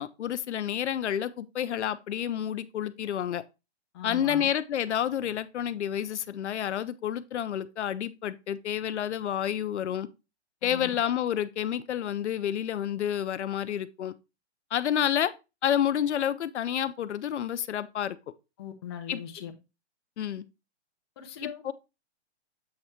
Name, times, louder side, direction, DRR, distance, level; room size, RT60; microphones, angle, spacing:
voice 1, 0.0-3.4 4.0-10.1 10.6-14.1 14.7-15.3 15.6-18.2 19.1-19.2 20.2-20.4 21.4-21.7, left 10 dB, 80° left, 0.6 m, -29 dB
voice 2, 3.9-4.5 10.6-10.9 18.6-19.5 21.2-21.6, left 9 dB, 25° left, 0.7 m, -40 dB
7.7 x 3.3 x 4.3 m
hypercardioid pair, 170°, 34 cm